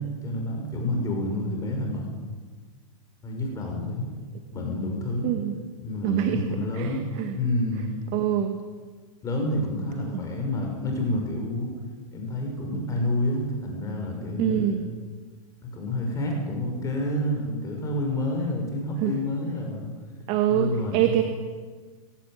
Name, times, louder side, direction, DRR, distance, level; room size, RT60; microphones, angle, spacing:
voice 1, 0.0-2.0 3.2-4.1 4.5-5.3 5.8-7.0 7.3-8.0 9.2-11.7 12.1-14.8 15.7-19.9 20.5-21.2, left 1 dB, 20° left, 1 dB, 6.0 m, -29 dB
voice 2, 5.2-5.5 6.0-6.4 6.7-7.4 8.1-8.6 10.1-10.2 14.4-14.8 19.0-19.1 20.3-21.2, right 11 dB, 40° right, 6 dB, 2.1 m, -24 dB
21.5 x 17.5 x 9.0 m, 1.5 s
hypercardioid pair, 130°, 18 cm